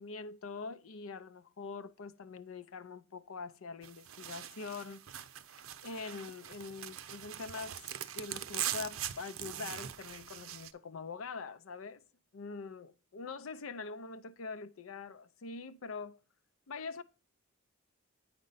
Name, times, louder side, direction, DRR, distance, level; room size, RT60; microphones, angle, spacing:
voice 1, 0.0-5.0 5.8-12.0 12.3-16.2 16.7-17.0, left 4 dB, 75° left, 0.5 m, -44 dB
sound 1, 3.8-10.7, right 11 dB, 85° right, 0.6 m, -42 dB
8.7 x 5.2 x 3.9 m
head